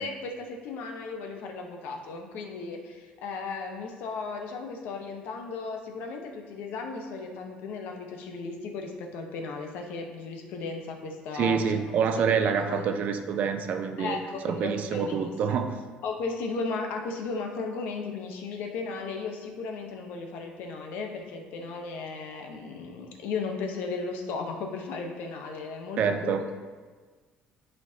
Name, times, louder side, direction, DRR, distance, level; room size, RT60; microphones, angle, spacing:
voice 1, 0.0-11.8 12.1-12.8 14.0-15.6 16.0-26.5, left 4 dB, 75° left, 3 dB, 1.0 m, -36 dB
voice 2, 11.3-14.2 14.4-15.8 26.0-26.5, right 6 dB, 55° right, 7 dB, 0.6 m, -27 dB
11.0 x 4.4 x 2.8 m, 1.4 s
cardioid pair, 125°, 3 cm